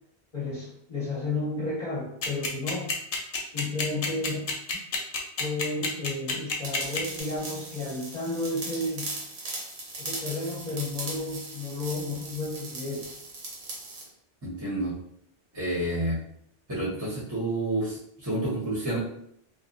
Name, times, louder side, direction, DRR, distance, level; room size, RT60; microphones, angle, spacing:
voice 1, 0.3-2.9 3.5-4.5 5.4-9.1 10.0-13.1, left 2 dB, 40° left, -6 dB, 0.8 m, -32 dB
sound 1, 2.2-7.2, left 4 dB, 60° left, 0.4 m, -28 dB
sound 2, 6.6-14.1, right 2 dB, 80° right, 1.0 m, -39 dB
voice 2, 14.4-14.9 15.5-16.2 16.7-19.0, right 1 dB, 20° right, -7 dB, 0.8 m, -29 dB
2.7 x 2.2 x 2.5 m, 0.71 s
omnidirectional pair, 1.1 m